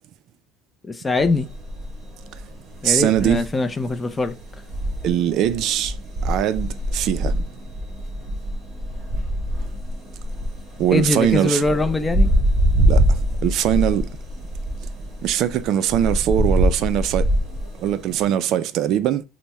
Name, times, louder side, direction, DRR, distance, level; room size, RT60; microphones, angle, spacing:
voice 1, 0.9-1.5 2.8-4.3 10.9-12.3, left 2 dB, 20° left, 0.4 m, -22 dB
sound 1, 1.2-18.2, equal, 35° right, 1.5 m, -24 dB
voice 2, 2.8-3.4 5.0-6.0 6.2-7.4 10.8-11.6 12.9-14.1 15.2-17.3 17.8-19.2, right 11 dB, 60° right, 0.3 m, -21 dB
4.0 x 2.0 x 3.4 m
supercardioid pair, 110°, 0 cm